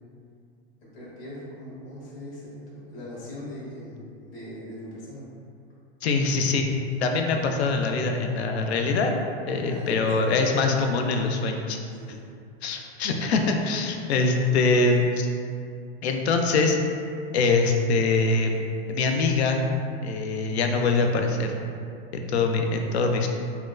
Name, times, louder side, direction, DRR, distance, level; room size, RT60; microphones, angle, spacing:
voice 1, 0.8-5.2 9.6-10.4 12.0-12.2, left 1 dB, 65° left, -8 dB, 1.5 m, -40 dB
voice 2, 6.0-6.7 7.0-9.1 9.5-11.8 12.6-15.3 16.0-16.8 17.3-18.6 18.9-19.6 20.0-21.5 22.1-23.3, left 3 dB, 90° left, 3 dB, 0.5 m, -23 dB
4.2 x 2.1 x 2.5 m, 2.4 s
hypercardioid pair, 115°, 32 cm